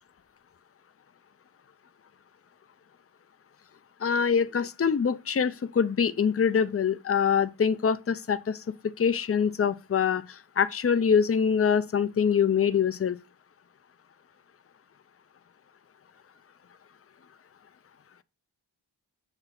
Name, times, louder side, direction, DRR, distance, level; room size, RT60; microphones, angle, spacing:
voice 1, 4.0-8.6 8.8-13.2, left 7 dB, 35° left, 0.5 m, -24 dB
6.8 x 2.9 x 5.8 m
wide cardioid pair, 65°, 43 cm